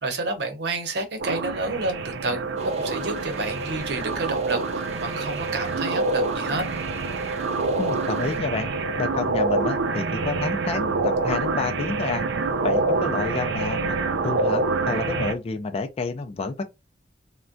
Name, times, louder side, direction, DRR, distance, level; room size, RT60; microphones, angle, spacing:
voice 1, 0.0-6.6, right 2 dB, 70° right, 0.8 m, -30 dB
sound 1, 1.2-15.3, right 3 dB, 85° right, 0.4 m, -26 dB
sound 2, 2.6-8.4, right 3 dB, 40° right, 0.6 m, -43 dB
voice 2, 7.8-8.7 9.0-12.2 12.6-14.0 14.2-16.6, left 4 dB, 35° left, 0.3 m, -29 dB
3.3 x 2.1 x 2.5 m
head